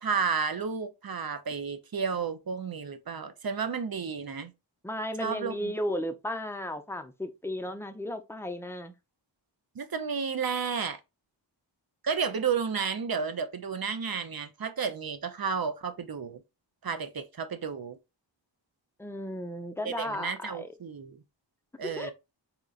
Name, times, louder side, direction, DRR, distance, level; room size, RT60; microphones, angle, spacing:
voice 1, 0.0-4.5 5.2-5.7 9.8-11.0 12.0-16.4 16.8-18.0 19.8-21.2 21.8-22.1, right 6 dB, 50° right, 0.6 m, -32 dB
voice 2, 4.8-8.9 19.0-20.7 21.8-22.1, left 1 dB, 5° left, 0.4 m, -34 dB
3.8 x 2.8 x 2.4 m
wide cardioid pair, 60°, 46 cm